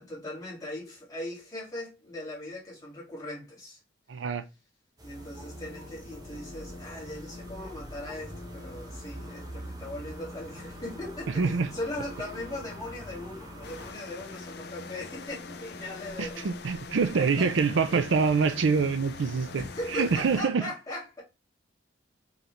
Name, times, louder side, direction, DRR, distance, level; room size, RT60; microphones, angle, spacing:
voice 1, 0.0-3.8 5.0-16.9 17.1-17.5 19.6-21.2, left 1 dB, 20° left, 2.0 m, -39 dB
voice 2, 4.1-4.4 11.4-11.7 16.2-19.6 19.9-20.6, right 5 dB, 75° right, 0.5 m, -25 dB
sound 1, 5.0-13.9, right 1 dB, 20° right, 0.9 m, -44 dB
sound 2, 5.2-20.1, left 2 dB, 90° left, 1.3 m, -48 dB
sound 3, 13.6-20.4, left 5 dB, 55° left, 0.5 m, -45 dB
4.8 x 3.3 x 3.0 m
head